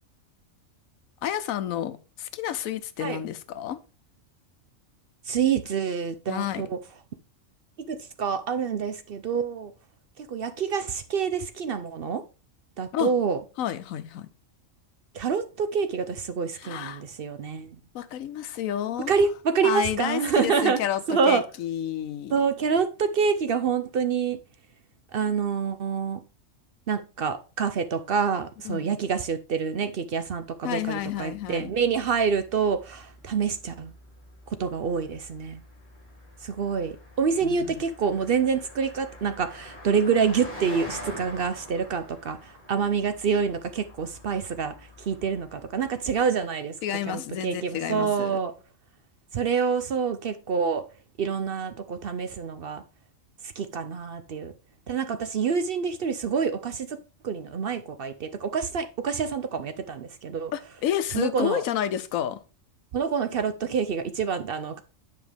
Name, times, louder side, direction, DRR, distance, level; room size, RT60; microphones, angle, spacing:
voice 1, 1.2-3.8 6.3-6.7 12.9-13.1 13.6-14.3 16.5-17.0 17.9-19.2 19.6-22.4 28.6-28.9 30.6-31.7 37.4-37.8 46.8-48.4 60.5-62.4, left 10 dB, 90° left, 1.1 m, -30 dB
voice 2, 5.3-6.7 7.9-9.7 10.2-12.2 12.8-13.4 15.1-17.8 19.1-20.8 21.1-21.4 22.3-24.4 25.1-26.2 26.9-33.9 34.6-35.6 36.4-46.7 47.1-48.5 49.3-50.8 51.2-52.8 53.6-54.5 54.9-57.0 57.2-60.5 61.1-61.6 62.9-64.8, right 6 dB, 55° right, 0.7 m, -27 dB
Car passing by, 30.5-46.2, left 1 dB, 30° left, 2.4 m, -46 dB
9.3 x 5.2 x 3.3 m
omnidirectional pair, 1.4 m